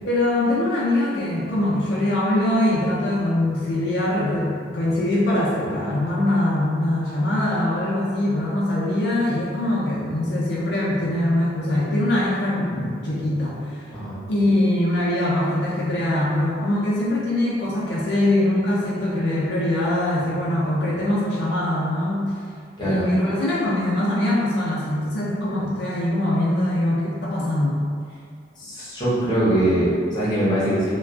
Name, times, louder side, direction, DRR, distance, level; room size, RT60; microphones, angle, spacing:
voice 1, 0.0-13.9 14.3-22.3 22.8-27.8, left 1 dB, 65° left, -7 dB, 0.4 m, -22 dB
voice 2, 28.6-31.0, right 1 dB, 25° left, -10 dB, 0.7 m, -22 dB
2.4 x 2.2 x 2.3 m, 2.1 s
head